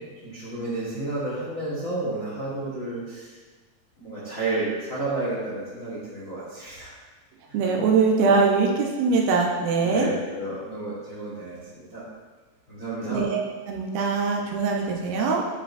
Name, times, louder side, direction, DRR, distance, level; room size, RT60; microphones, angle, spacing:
voice 1, 0.2-3.4 4.0-6.9 7.5-7.6 9.8-12.0 12.7-13.2, right 2 dB, 70° left, -9 dB, 0.8 m, -31 dB
voice 2, 7.5-10.1 13.1-13.4 13.7-15.4, right 4 dB, 80° right, -1 dB, 2.7 m, -22 dB
10.0 x 5.2 x 2.6 m, 1.3 s
omnidirectional pair, 4.4 m